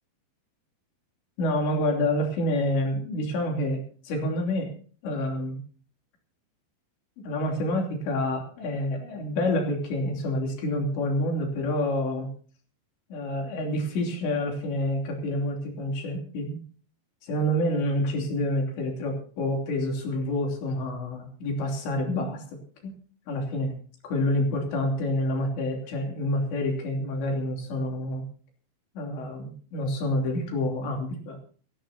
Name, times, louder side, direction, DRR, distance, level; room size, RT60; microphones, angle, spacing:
voice 1, 1.4-4.7 5.0-5.6 7.2-12.3 13.1-16.6 17.2-22.4 22.8-22.9 23.3-23.7 24.0-28.2 29.0-31.4, left 1 dB, 75° left, 1 dB, 5.3 m, -28 dB
27.0 x 11.5 x 2.8 m, 0.43 s
omnidirectional pair, 5.2 m